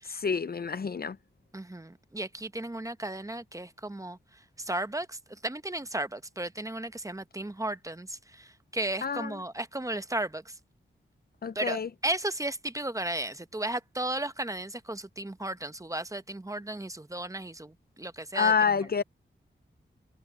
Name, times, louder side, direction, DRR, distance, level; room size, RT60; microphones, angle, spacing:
voice 1, 0.1-1.2 9.0-9.4 11.4-11.9 18.3-19.0, left 6 dB, 50° left, 0.6 m, -28 dB
voice 2, 1.5-4.2 4.6-10.5 11.5-18.5, right 1 dB, 15° right, 0.9 m, -35 dB
cardioid pair, 60°, 20 cm